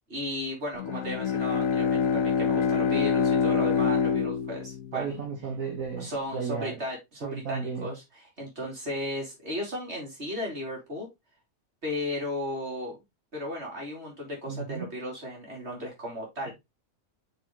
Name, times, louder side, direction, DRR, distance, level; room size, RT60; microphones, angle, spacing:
voice 1, 0.1-5.2 6.0-11.1 11.8-13.0 13.3-16.5, left 1 dB, 50° right, 3.5 m, -35 dB
Bowed string instrument, 0.7-5.5, left 6 dB, 75° left, 1.2 m, -26 dB
voice 2, 4.9-6.8 7.2-7.9 14.5-14.9, right 6 dB, 80° right, 2.1 m, -34 dB
6.4 x 6.1 x 3.1 m
omnidirectional pair, 1.4 m